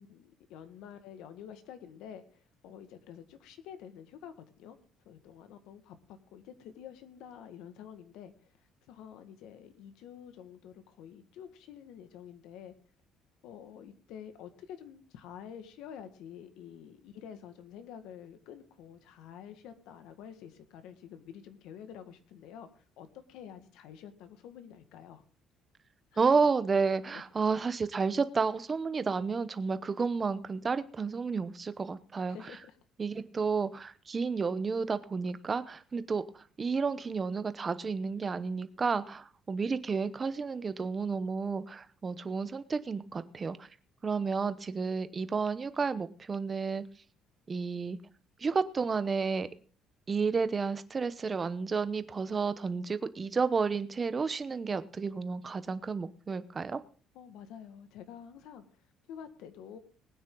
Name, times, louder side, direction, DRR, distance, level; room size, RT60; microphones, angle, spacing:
voice 1, 0.0-4.8 5.1-12.7 13.4-25.2 26.1-26.2 27.1-27.2 32.2-32.8 57.1-59.8, left 8 dB, 80° left, 9 dB, 1.8 m, -49 dB
voice 2, 26.2-32.4 33.0-36.2 36.6-43.7 44.0-46.8 47.5-48.0 48.4-49.5 50.1-56.8, right 5 dB, 20° right, 13 dB, 0.9 m, -31 dB
20.5 x 9.5 x 3.9 m, 0.42 s
cardioid pair, 160°, 0 cm